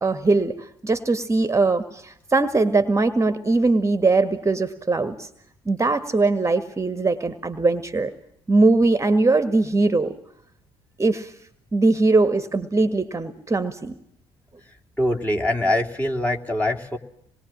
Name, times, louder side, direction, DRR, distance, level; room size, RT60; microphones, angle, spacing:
voice 1, 0.0-5.3 5.6-8.1 8.5-10.1 11.0-11.3 11.7-13.9, right 3 dB, 20° right, 11 dB, 1.7 m, -21 dB
voice 2, 15.0-17.0, left 1 dB, 10° left, 0 dB, 3.1 m, -23 dB
26.5 x 21.0 x 7.4 m, 0.72 s
figure-of-eight pair, 45°, 14 cm